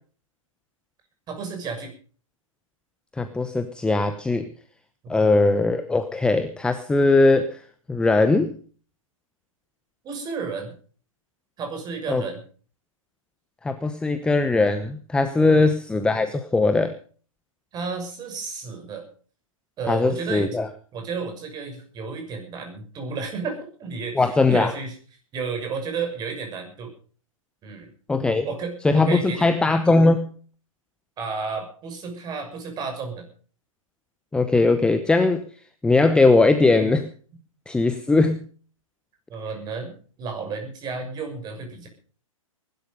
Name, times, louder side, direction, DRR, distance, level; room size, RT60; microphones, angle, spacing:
voice 1, 1.3-1.9 5.0-5.3 10.0-10.7 11.6-12.4 15.4-15.6 17.7-19.1 19.8-20.5 20.9-25.0 25.3-26.9 27.6-27.9 28.4-29.5 31.2-33.3 39.3-39.9 40.2-41.9, right 5 dB, 25° right, 5 dB, 6.4 m, -32 dB
voice 2, 3.2-4.5 5.1-7.6 7.9-8.5 12.1-12.2 13.6-16.9 19.9-20.7 24.1-24.7 28.1-28.5 28.8-30.3 34.3-35.5 35.8-37.1 37.7-38.4, left 3 dB, 5° left, 10 dB, 0.9 m, -20 dB
20.0 x 12.0 x 5.4 m, 0.42 s
figure-of-eight pair, 120°, 18 cm